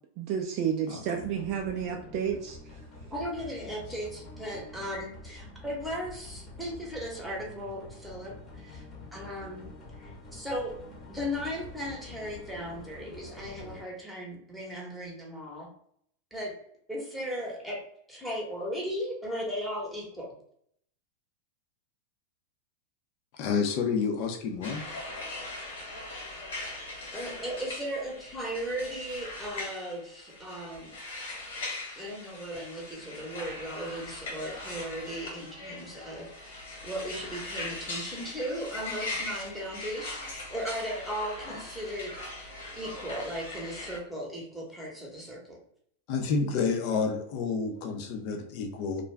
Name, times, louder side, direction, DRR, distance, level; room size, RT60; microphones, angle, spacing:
voice 1, 0.2-2.8, right 8 dB, 50° right, 2 dB, 0.4 m, -31 dB
voice 2, 0.9-1.3 4.9-5.0 23.3-24.8 39.1-39.4 41.4-41.6 46.1-49.0, left 5 dB, 50° left, 4 dB, 0.6 m, -30 dB
sound 1, 1.2-13.8, left 2 dB, 30° left, 0.9 m, -47 dB
voice 3, 3.1-8.8 9.1-9.7 10.0-10.8 11.1-15.7 16.3-16.5 16.9-17.8 18.1-20.3 27.1-30.9 31.9-45.6, equal, ahead, -3 dB, 0.9 m, -37 dB
sound 2, 24.6-44.0, left 2 dB, 90° left, 1.3 m, -40 dB
2.5 x 2.2 x 3.2 m, 0.68 s
supercardioid pair, 130°, 0 cm